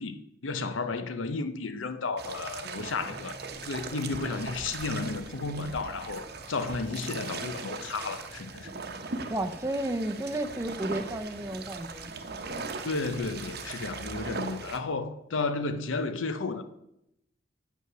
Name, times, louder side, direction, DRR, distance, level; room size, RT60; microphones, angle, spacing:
voice 1, 0.0-3.3 3.6-8.7 12.8-16.6, left 3 dB, 80° left, 0.7 m, -33 dB
sound 1, 2.2-14.8, right 4 dB, 55° right, 0.9 m, -39 dB
voice 2, 9.3-12.1, right 1 dB, 15° right, 0.6 m, -32 dB
7.9 x 5.5 x 6.1 m
head